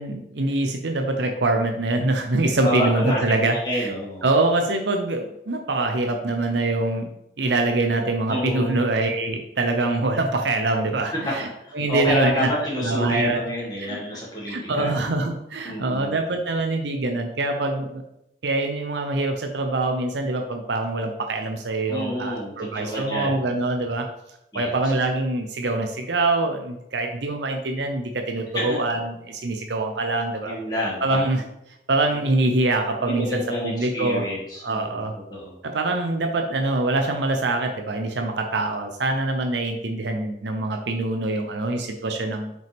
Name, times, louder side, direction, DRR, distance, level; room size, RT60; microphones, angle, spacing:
voice 1, 0.0-3.9 4.2-7.1 7.4-11.5 11.7-12.5 12.8-13.4 13.9-14.0 14.5-18.0 18.4-24.1 24.5-30.6 31.0-31.4 31.9-34.3 34.6-35.1 35.6-42.5, right 2 dB, 75° right, 4 dB, 0.7 m, -24 dB
voice 2, 2.6-4.2 8.3-8.8 11.2-11.3 11.6-14.9 15.6-16.2 21.9-23.4 24.5-24.7 28.5-28.8 30.4-31.3 33.0-35.6, equal, 20° left, -5 dB, 2.1 m, -28 dB
6.1 x 5.3 x 3.5 m, 0.83 s
head